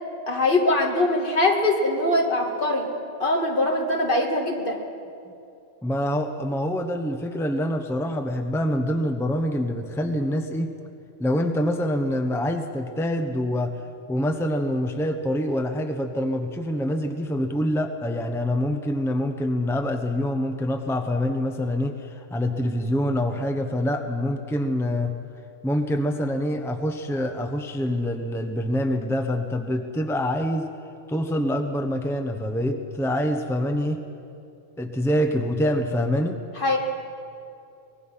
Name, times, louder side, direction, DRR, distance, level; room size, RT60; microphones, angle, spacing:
voice 1, 0.3-2.9 3.2-4.8 36.6-36.8, left 2 dB, 55° left, 1 dB, 2.3 m, -22 dB
voice 2, 5.8-10.7 11.2-13.8 14.1-25.1 25.6-30.7 31.1-34.0 34.8-36.4, equal, 5° left, 5 dB, 0.9 m, -25 dB
24.0 x 20.0 x 5.7 m, 2.6 s
omnidirectional pair, 1.1 m